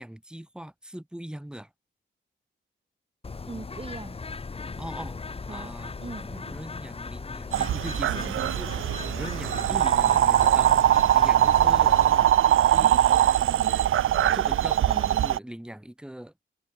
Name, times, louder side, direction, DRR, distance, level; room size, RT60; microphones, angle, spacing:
voice 1, 0.0-1.7 4.8-5.2 5.5-5.9 6.3-8.8 9.1-10.7 11.1-12.0 12.7-13.0 14.3-16.3, right 1 dB, 5° right, 2.5 m, -40 dB
Bird, 3.2-12.2, left 4 dB, 30° left, 1.6 m, -37 dB
voice 2, 3.5-4.2 5.5-6.6 14.9-15.2, right 4 dB, 30° right, 4.9 m, -41 dB
sound 1, 7.5-15.4, right 11 dB, 85° right, 0.6 m, -21 dB
wide cardioid pair, 140°, 20 cm